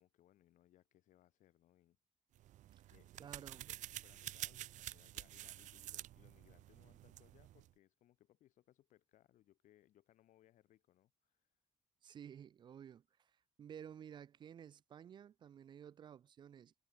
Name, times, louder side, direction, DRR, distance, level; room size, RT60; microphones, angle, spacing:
voice 1, 0.0-2.0 2.9-11.6, left 13 dB, 85° left, 2.1 m, -70 dB
sound 1, 2.4-7.7, right 14 dB, 80° right, 0.9 m, -50 dB
voice 2, 3.2-3.7 12.0-13.3 13.6-16.7, right 9 dB, 40° right, 0.4 m, -54 dB
cardioid pair, 165°, 13 cm